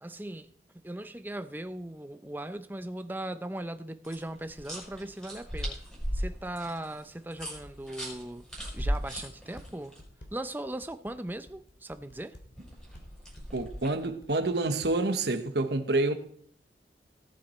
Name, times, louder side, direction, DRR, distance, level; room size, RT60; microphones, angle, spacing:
voice 1, 0.0-5.8 6.1-8.4 8.7-9.9 10.3-12.4, right 1 dB, 10° right, 0.6 m, -38 dB
sound 1, 4.0-10.0 12.6-14.0, equal, 5° left, 5.6 m, -37 dB
sound 2, 8.5-9.6 10.0-13.0 13.4-13.9 14.2-14.9, equal, 85° left, 3.0 m, -51 dB
voice 2, 13.5-16.1, right 2 dB, 65° right, 1.1 m, -28 dB
18.0 x 9.0 x 4.3 m
head